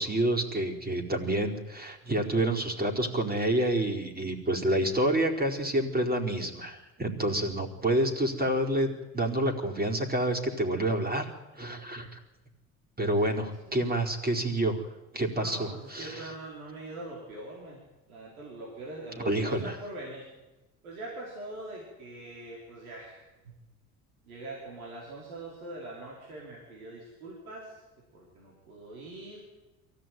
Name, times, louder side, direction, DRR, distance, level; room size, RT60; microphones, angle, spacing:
voice 1, 0.0-12.2 13.0-14.8 15.1-16.3 19.2-19.8, right 1 dB, 20° right, 2 dB, 4.6 m, -28 dB
voice 2, 13.3-13.8 15.3-17.8 18.1-20.3 20.8-23.2 24.2-27.8 28.1-29.4, right 2 dB, 90° right, -3 dB, 5.0 m, -43 dB
23.0 x 15.5 x 9.3 m, 1.1 s
hypercardioid pair, 60°, 41 cm